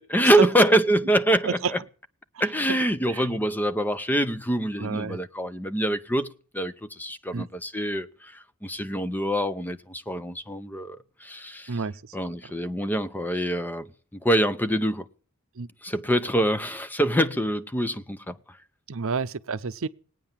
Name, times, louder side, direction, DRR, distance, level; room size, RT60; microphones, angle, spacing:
voice 1, 0.1-1.8 2.4-6.3 6.5-11.7 12.1-15.1 15.8-18.4, right 1 dB, 10° left, 0.7 m, -25 dB
voice 2, 4.8-5.2 7.3-7.5 11.7-12.2 12.4-12.5 15.6-15.7 18.9-19.9, right 5 dB, 65° right, 0.7 m, -29 dB
19.0 x 9.3 x 7.3 m
head